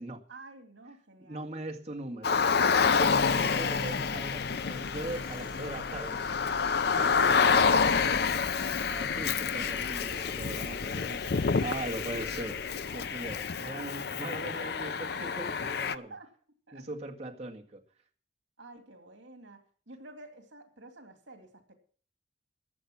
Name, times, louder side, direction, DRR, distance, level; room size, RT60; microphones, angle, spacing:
voice 1, 0.3-1.5 5.3-5.4 7.2-9.0 15.6-16.3 16.7-16.9 18.6-21.7, right 3 dB, 75° right, 4 dB, 2.8 m, -49 dB
voice 2, 1.2-2.4 2.9-6.3 7.0-7.4 8.9-16.2 16.7-17.8, right 2 dB, 35° right, 1 dB, 1.8 m, -40 dB
Car, 2.2-15.9, left 5 dB, 55° left, 0.5 m, -28 dB
sound 1, 2.3-13.8, equal, 25° left, 3.4 m, -48 dB
14.5 x 9.3 x 6.0 m, 0.43 s
head